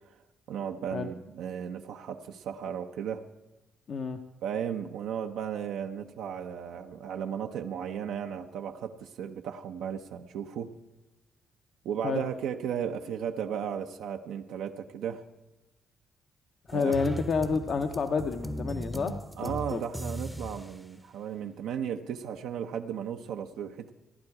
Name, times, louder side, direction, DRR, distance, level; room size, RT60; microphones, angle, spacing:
voice 1, 0.5-3.2 4.4-10.7 11.8-15.3 16.7-16.9 19.4-23.9, right 8 dB, 85° right, 4 dB, 0.6 m, -35 dB
voice 2, 3.9-4.2 12.0-12.2 16.7-19.8, left 5 dB, 55° left, 6 dB, 0.7 m, -29 dB
sound 1, 16.7-20.8, right 1 dB, 5° right, 0.6 m, -38 dB
15.0 x 10.5 x 4.8 m, 1.1 s
cardioid pair, 90°, 0 cm